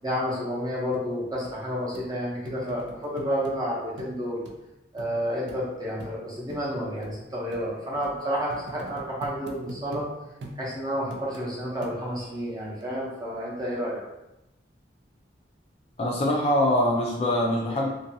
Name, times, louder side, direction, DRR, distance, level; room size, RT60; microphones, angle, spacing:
voice 1, 0.0-4.4 4.9-10.0 10.6-14.0, equal, 20° right, -6 dB, 0.6 m, -30 dB
sound 1, 0.9-1.0 1.4-1.6 1.9-2.1 2.4-3.6 4.0-4.2 4.4-4.6 5.0-5.1 5.5-5.6 6.0-6.2 6.5-6.6 7.0-7.1 7.5-7.6 8.0-8.2 8.5-10.1 10.4-10.6 11.1-11.5 11.8-12.3 12.8-12.9, right 2 dB, 70° right, 0.4 m, -42 dB
voice 2, 16.0-17.9, left 1 dB, 35° left, -2 dB, 0.3 m, -23 dB
2.6 x 2.2 x 2.6 m, 0.93 s
head